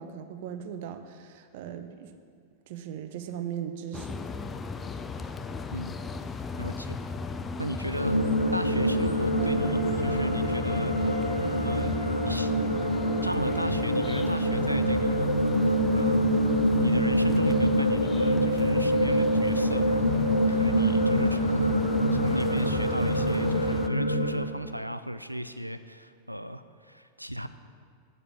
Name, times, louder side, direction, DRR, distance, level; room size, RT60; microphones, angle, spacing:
voice 1, 0.0-2.2 2.7-4.2, right 9 dB, 50° right, 9 dB, 0.6 m, -38 dB
sound 1, 3.9-23.9, left 4 dB, 20° left, 0.4 m, -37 dB
voice 2, 6.6-7.0 7.6-8.2 8.5-10.9 11.6-11.9 12.2-12.5 13.2-15.3 15.9-16.3 16.8-21.7 22.1-27.5, equal, 90° right, 11 dB, 0.3 m, -35 dB
sound 2, 7.9-24.5, equal, 90° left, 0.5 m, -25 dB
sound 3, 9.3-15.7, equal, 70° left, 2.5 m, -42 dB
6.8 x 6.6 x 7.4 m, 2.1 s
figure-of-eight pair, 90°, 0 cm